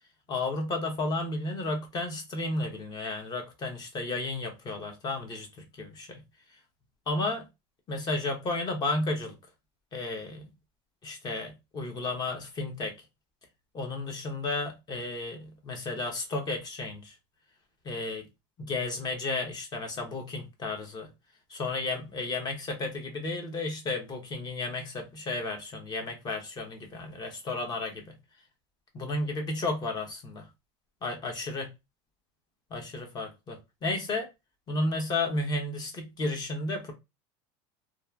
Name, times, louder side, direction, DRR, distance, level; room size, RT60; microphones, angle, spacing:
voice 1, 0.3-6.2 7.1-7.5 7.9-9.4 9.9-10.5 11.0-12.9 13.7-17.1 17.8-18.2 18.6-21.1 21.5-28.2 28.9-30.5 31.0-31.7 32.7-34.3 34.7-36.9, left 2 dB, 30° left, 0.8 m, -33 dB
2.8 x 2.4 x 2.2 m
supercardioid pair, 130°, 15 cm